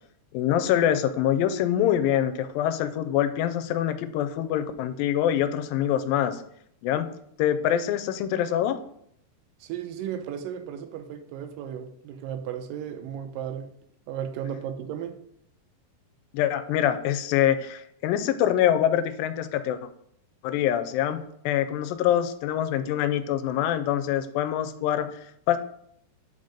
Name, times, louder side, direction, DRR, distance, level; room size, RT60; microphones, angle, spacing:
voice 1, 0.3-6.4 6.8-7.1 7.4-8.8 16.3-19.8 20.4-21.2 21.5-25.6, left 10 dB, 85° left, 11 dB, 2.3 m, -25 dB
voice 2, 9.6-13.7 14.1-15.2, right 9 dB, 85° right, 8 dB, 2.3 m, -35 dB
5.5 x 5.4 x 5.1 m, 0.71 s
omnidirectional pair, 4.0 m